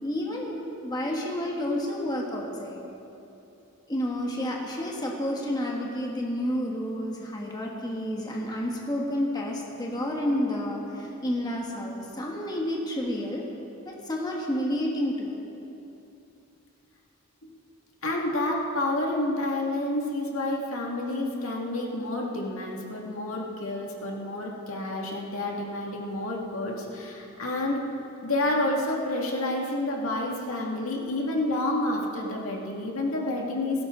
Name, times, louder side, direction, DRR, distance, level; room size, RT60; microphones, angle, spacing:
voice 1, 0.0-2.8 3.9-13.4 13.8-15.4, left 1 dB, 20° left, -1 dB, 1.5 m, -30 dB
voice 2, 18.0-27.8 28.2-33.9, left 1 dB, 75° left, -1 dB, 2.1 m, -29 dB
17.0 x 16.0 x 3.8 m, 2.8 s
head